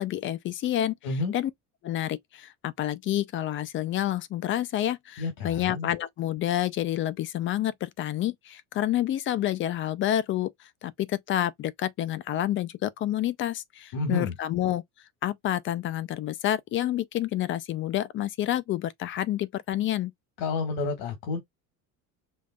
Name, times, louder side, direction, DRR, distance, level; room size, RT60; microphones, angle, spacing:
voice 1, 0.0-1.0 1.3-1.5 1.8-10.5 10.8-14.8 15.2-20.1, left 12 dB, 35° left, 0.4 m, -28 dB
voice 2, 1.0-1.3 5.2-5.9 13.9-14.3 20.4-21.4, left 3 dB, 75° left, 1.8 m, -30 dB
5.2 x 3.2 x 2.3 m
cardioid pair, 145°, 36 cm